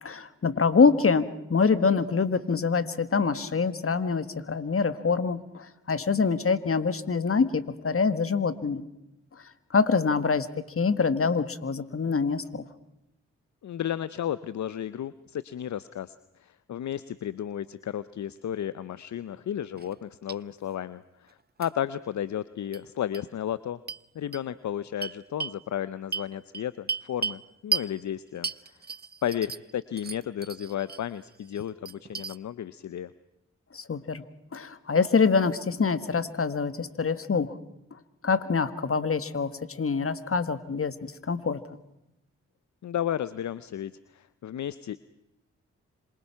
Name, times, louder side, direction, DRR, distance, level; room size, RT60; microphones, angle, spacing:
voice 1, 0.0-8.9 9.7-10.5 10.8-12.6 33.7-34.2 34.5-37.5 38.2-41.6, left 5 dB, 45° left, 13 dB, 1.9 m, -25 dB
voice 2, 13.6-16.1 16.4-23.8 24.1-28.8 29.2-33.1 42.8-45.0, left 10 dB, 65° left, 16 dB, 0.8 m, -33 dB
sound 1, 19.7-20.0 20.3-20.4 21.6-21.7 22.7-22.8 23.1-23.2 23.9-24.0 24.3-24.4 25.0-25.6 26.1-27.4 27.7-27.9 28.4-29.7 30.0-31.0 31.4-32.4, right 5 dB, 30° right, 0.8 m, -34 dB
26.5 x 23.0 x 5.8 m, 0.85 s
supercardioid pair, 40°, 31 cm